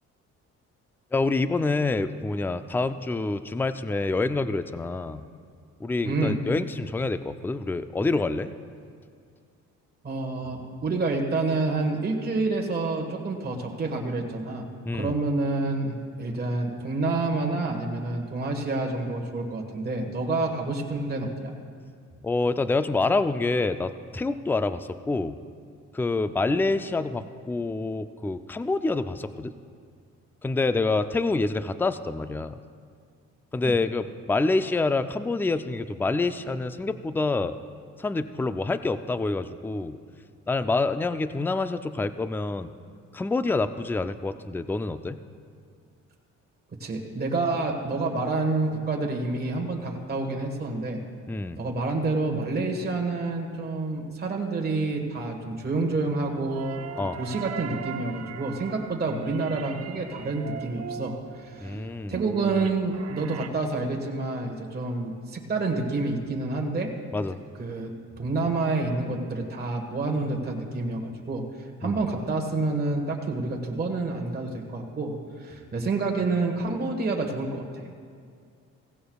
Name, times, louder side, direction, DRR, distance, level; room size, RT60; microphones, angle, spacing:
voice 1, 1.1-5.3 5.8-8.5 14.9-15.2 22.2-25.4 25.9-29.5 30.4-32.6 33.5-37.6 38.0-40.0 40.5-42.7 43.1-45.2 51.3-51.6 57.0-57.2 61.6-62.2 67.1-67.4 71.8-72.0, left 3 dB, 5° left, 11 dB, 0.4 m, -27 dB
voice 2, 6.0-6.4 10.0-21.5 33.6-33.7 46.8-51.0 51.6-56.8 57.2-61.1 61.4-61.8 62.1-66.9 67.6-71.4 71.8-75.1 75.4-77.9, right 3 dB, 30° right, 1 dB, 1.5 m, -28 dB
sound 1, 56.0-63.5, right 8 dB, 55° right, 0.7 m, -39 dB
16.5 x 15.5 x 2.3 m, 2.2 s
cardioid pair, 90°, 30 cm